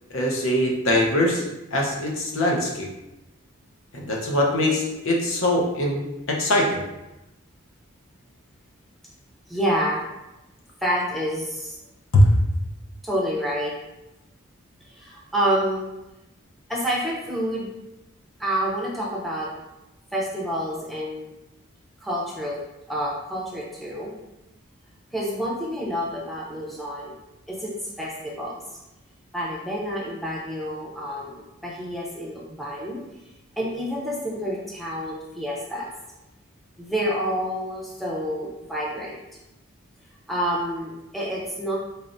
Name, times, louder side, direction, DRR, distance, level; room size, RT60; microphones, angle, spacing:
voice 1, 0.1-1.4 1.7-2.9 3.9-6.8 12.1-12.3, left 1 dB, 70° left, -1 dB, 0.8 m, -22 dB
voice 2, 9.5-10.1 10.8-11.8 13.0-13.7 14.9-15.9 16.7-17.7 18.4-19.5 20.1-21.3 22.0-22.6 22.9-24.1 25.1-27.2 27.5-28.6 29.3-33.0 33.6-35.9 36.8-39.2 40.3-41.8, equal, ahead, -5 dB, 0.6 m, -28 dB
4.0 x 3.3 x 2.6 m, 0.96 s
head